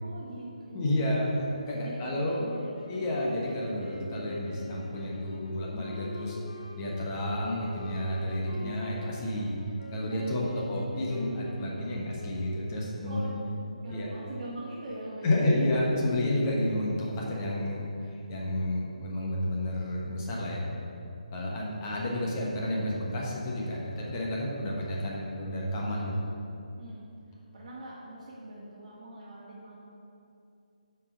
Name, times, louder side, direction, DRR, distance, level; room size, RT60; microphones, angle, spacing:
voice 1, 0.0-1.2 1.7-3.2 8.5-8.7 10.1-10.7 13.0-13.5 13.8-15.8 18.5-18.7 21.6-21.9 26.8-27.1 27.3-29.8, right 1 dB, 40° right, -8 dB, 1.7 m, -42 dB
voice 2, 0.7-2.4 2.9-6.4 6.8-9.6 9.9-13.3 13.9-14.1 15.2-20.6 21.3-26.1, left 1 dB, 25° left, -4 dB, 1.3 m, -30 dB
sound 1, 2.4-12.8, left 2 dB, 80° left, 1.4 m, -45 dB
8.6 x 4.7 x 5.3 m, 2.7 s
figure-of-eight pair, 145°, 4 cm